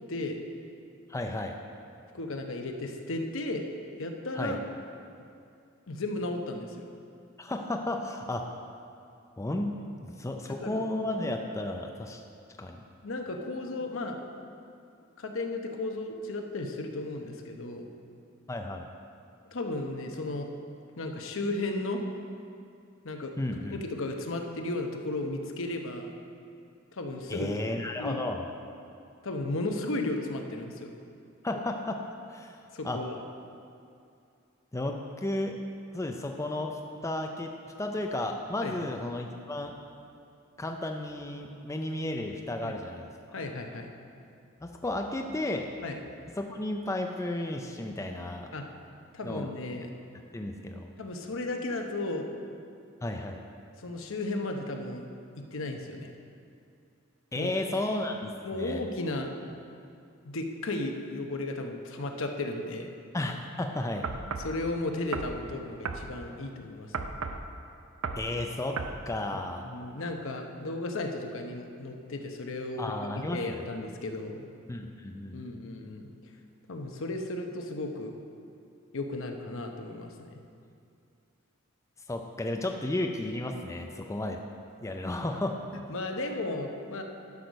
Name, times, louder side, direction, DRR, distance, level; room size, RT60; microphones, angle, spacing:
voice 1, 1.1-1.6 4.4-4.6 7.4-8.5 9.4-9.7 10.0-12.2 12.6-12.8 18.5-18.8 23.4-23.8 27.3-28.4 31.4-32.0 32.3-32.6 32.8-33.0 34.7-35.5 35.9-37.5 37.8-39.7 40.6-43.1 44.6-45.7 46.4-48.5 49.2-49.5 50.3-50.9 53.0-53.4 57.3-58.8 63.1-64.1 68.2-68.8 69.1-69.7 72.8-73.7 74.7-75.4 82.1-84.4 84.8-85.6, left 1 dB, 15° left, 3 dB, 0.5 m, -33 dB
voice 2, 2.1-3.6 4.0-4.6 5.9-6.9 9.9-10.0 10.6-10.8 13.0-14.2 15.2-17.9 19.5-20.5 20.9-22.0 23.0-23.3 23.7-26.1 26.9-27.6 28.0-28.2 29.2-30.9 32.7-33.1 38.6-38.9 42.6-42.8 43.3-43.9 45.8-46.0 48.5-48.6 49.1-49.9 51.0-52.3 53.8-55.0 55.4-56.1 57.3-57.5 58.4-59.3 60.2-62.9 64.4-67.1 69.3-74.5 75.3-76.1 76.7-78.1 78.9-80.4 85.7-87.0, left 2 dB, 65° left, 3 dB, 0.9 m, -34 dB
sound 1, 64.0-64.5 65.1-65.4 65.8-66.1 66.9-67.5 68.0-68.3 68.8-69.0, right 4 dB, 70° right, 0.6 m, -34 dB
12.0 x 6.3 x 5.2 m, 2.5 s
head